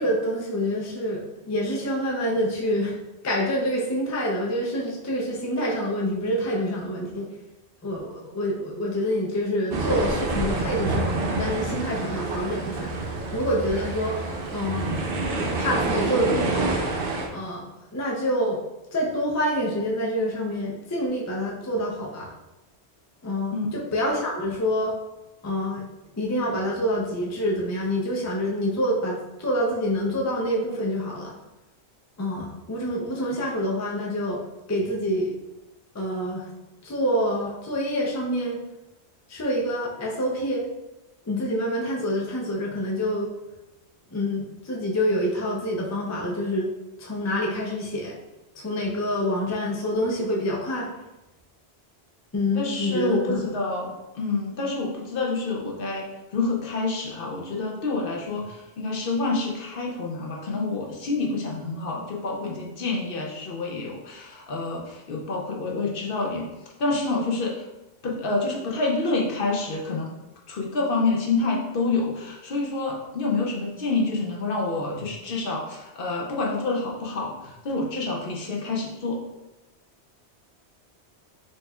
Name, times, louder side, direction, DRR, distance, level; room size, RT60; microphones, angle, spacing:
voice 1, 0.0-3.0 3.2-7.3 7.8-12.9 13.3-14.2 14.5-14.9 15.6-16.7 17.3-18.6 18.9-22.3 23.2-24.9 25.4-25.8 26.2-31.3 32.2-35.4 35.9-36.5 36.8-38.6 39.3-40.7 41.3-43.3 44.1-46.7 47.0-48.2 48.5-50.9 52.3-53.5, equal, 25° left, -3 dB, 0.4 m, -27 dB
sound 1, 9.7-17.3, right 3 dB, 60° right, 0.7 m, -27 dB
voice 2, 52.5-66.5 66.8-67.6 68.0-70.1 70.5-79.2, left 3 dB, 60° left, -2 dB, 0.8 m, -28 dB
4.2 x 3.2 x 2.3 m, 0.99 s
omnidirectional pair, 1.1 m